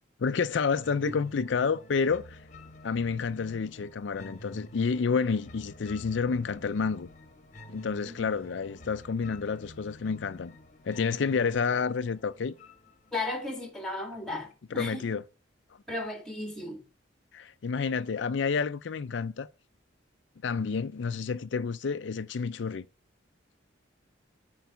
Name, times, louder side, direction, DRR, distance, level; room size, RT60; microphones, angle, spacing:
voice 1, 0.2-2.4 2.8-7.1 7.7-10.5 10.8-12.5 14.7-15.2 17.3-19.5 20.4-22.9, left 5 dB, 70° left, 0.4 m, -29 dB
sound 1, 0.8-13.8, left 1 dB, 40° left, 1.1 m, -50 dB
voice 2, 13.1-15.1 15.9-16.8, left 2 dB, 5° left, 2.2 m, -35 dB
10.5 x 4.7 x 8.0 m
head